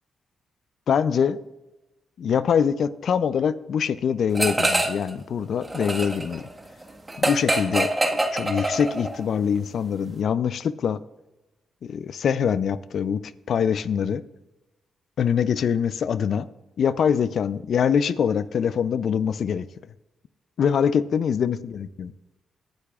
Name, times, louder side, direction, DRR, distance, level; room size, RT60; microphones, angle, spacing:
voice 1, 0.9-1.4 2.2-6.5 7.2-11.0 11.8-13.2 13.5-14.2 15.2-16.5 16.8-19.7 20.6-22.1, left 7 dB, 70° left, 16 dB, 0.5 m, -24 dB
sound 1, 4.3-5.1 5.4-9.2, right 1 dB, 25° right, 1.6 m, -25 dB
20.0 x 10.5 x 2.4 m, 1.0 s
supercardioid pair, 55°, 0 cm